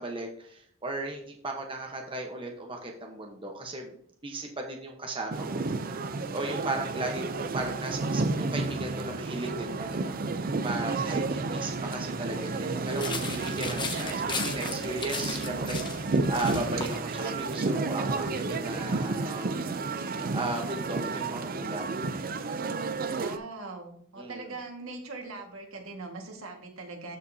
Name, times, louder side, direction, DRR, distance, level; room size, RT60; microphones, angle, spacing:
voice 1, 0.0-3.9 4.2-5.7 6.3-21.8 24.2-24.5, right 2 dB, 25° right, 1 dB, 1.0 m, -36 dB
sound 1, 5.3-23.4, right 3 dB, 40° right, 0.5 m, -31 dB
sound 2, 12.9-17.0, left 4 dB, 20° left, 0.9 m, -36 dB
voice 2, 23.0-27.2, right 3 dB, 75° right, 2 dB, 1.7 m, -41 dB
13.5 x 5.2 x 2.8 m, 0.63 s
head